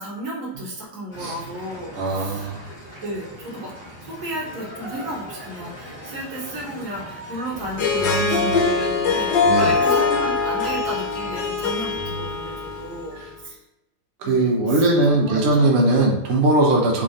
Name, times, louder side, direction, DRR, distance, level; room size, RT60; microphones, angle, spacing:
voice 1, 0.0-2.5 3.0-3.7 4.0-9.3 9.6-13.6 14.2-15.9, right 1 dB, 50° right, -3 dB, 1.3 m, -33 dB
sound 1, 1.1-8.2, equal, 25° left, 1.1 m, -40 dB
voice 2, 1.9-2.7 8.0-8.6 9.4-9.7 12.0-12.2 13.1-13.3 14.2-17.0, right 2 dB, 75° right, -1 dB, 0.6 m, -20 dB
Harp, 7.6-13.1, left 4 dB, 70° left, 1.3 m, -22 dB
3.6 x 2.5 x 3.2 m, 0.94 s
omnidirectional pair, 2.1 m